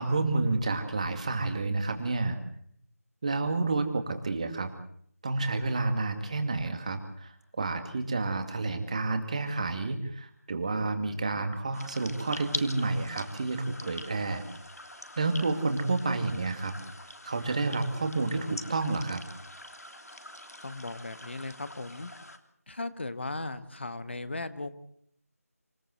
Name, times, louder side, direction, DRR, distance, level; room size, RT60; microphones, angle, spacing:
voice 1, 0.0-2.4 3.2-4.7 5.2-14.4 15.2-16.7 17.2-19.2, right 3 dB, 25° right, 8 dB, 2.2 m, -30 dB
sound 1, 11.7-22.4, left 1 dB, 75° left, 3.0 m, -44 dB
voice 2, 20.6-22.1 22.7-24.7, left 2 dB, 45° left, 12 dB, 1.6 m, -37 dB
27.0 x 17.0 x 8.0 m, 0.67 s
figure-of-eight pair, 165°, 9 cm